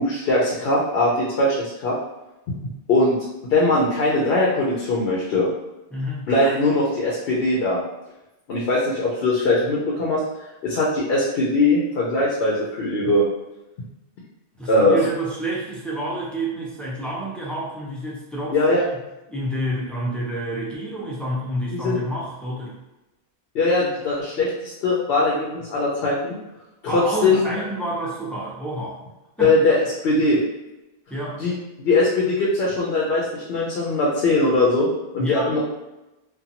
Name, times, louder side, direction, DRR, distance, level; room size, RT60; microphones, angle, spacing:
voice 1, 0.0-2.0 2.9-3.2 3.5-5.5 6.3-7.8 8.5-10.2 10.6-13.3 14.7-15.0 18.5-18.8 21.7-22.0 23.5-26.4 26.8-27.4 29.4-29.8 30.0-30.4 31.4-31.5 31.8-34.9 35.1-35.6, left 2 dB, 75° left, -5 dB, 0.8 m, -20 dB
voice 2, 5.9-6.3 14.6-18.6 18.8-19.0 19.3-22.8 26.8-29.0 29.4-29.6 31.1-31.5 35.2-35.6, right 1 dB, ahead, -6 dB, 0.4 m, -29 dB
2.6 x 2.2 x 2.7 m, 0.98 s
omnidirectional pair, 1.0 m